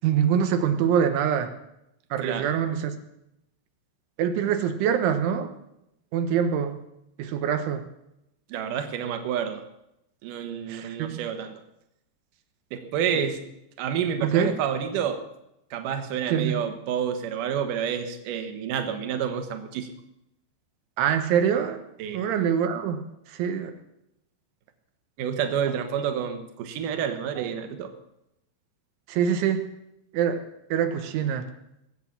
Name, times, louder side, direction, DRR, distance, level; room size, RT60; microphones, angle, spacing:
voice 1, 0.0-1.5 2.1-3.0 4.2-5.5 6.1-6.8 7.2-7.9 10.7-11.2 14.2-14.6 16.3-16.6 21.0-21.8 22.1-23.0 23.3-23.7 27.4-27.5 29.1-29.7 30.1-30.4 30.7-31.5, right 8 dB, 85° right, 8 dB, 3.6 m, -24 dB
voice 2, 8.5-9.6 10.2-11.6 12.7-13.4 13.8-15.2 15.7-19.9 22.0-22.2 25.2-27.9, right 8 dB, 65° right, 7 dB, 2.4 m, -29 dB
21.5 x 8.3 x 7.3 m, 0.84 s
omnidirectional pair, 5.3 m